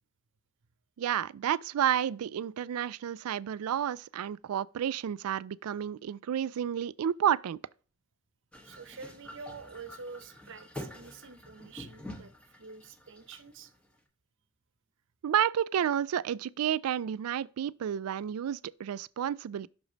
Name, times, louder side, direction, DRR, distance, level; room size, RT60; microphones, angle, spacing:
voice 1, 1.0-7.6 15.2-19.7, right 9 dB, 80° right, 0.3 m, -31 dB
sound 1, 8.5-13.9, left 1 dB, 5° left, 1.1 m, -47 dB
voice 2, 8.6-12.3 12.6-13.7, right 4 dB, 60° right, 0.8 m, -47 dB
6.2 x 4.9 x 3.9 m
head